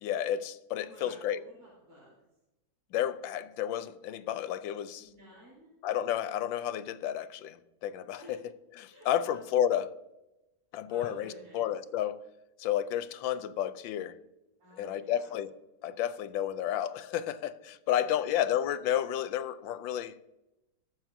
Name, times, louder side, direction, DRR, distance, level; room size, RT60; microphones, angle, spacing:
voice 1, 0.0-1.4 2.9-5.1 5.8-8.4 8.8-9.9 10.7-12.2 12.6-14.2 14.8-15.5 15.8-20.2, left 10 dB, 80° left, 1.3 m, -31 dB
voice 2, 0.8-2.2 5.0-5.7 8.2-8.4 8.9-9.4 10.9-11.7 14.6-15.3 17.8-18.3, equal, 65° right, 4.9 m, -53 dB
21.0 x 7.2 x 2.7 m
omnidirectional pair, 2.1 m